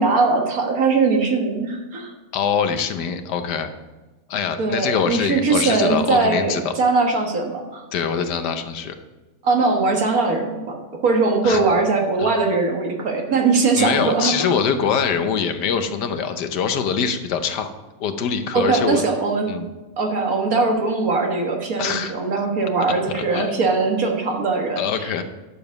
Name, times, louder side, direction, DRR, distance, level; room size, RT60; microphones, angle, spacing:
voice 1, 0.0-2.1 4.6-7.8 9.4-14.6 18.5-19.5 20.0-25.2, right 3 dB, 60° right, 2 dB, 1.9 m, -21 dB
voice 2, 2.3-3.7 4.3-6.7 7.9-8.9 11.4-11.6 12.2-12.3 13.8-17.7 18.0-19.0 19.5-19.7 21.8-22.1 23.1-23.6 24.8-25.2, left 6 dB, 80° left, 8 dB, 1.4 m, -23 dB
11.0 x 6.9 x 5.2 m, 1.2 s
omnidirectional pair, 1.8 m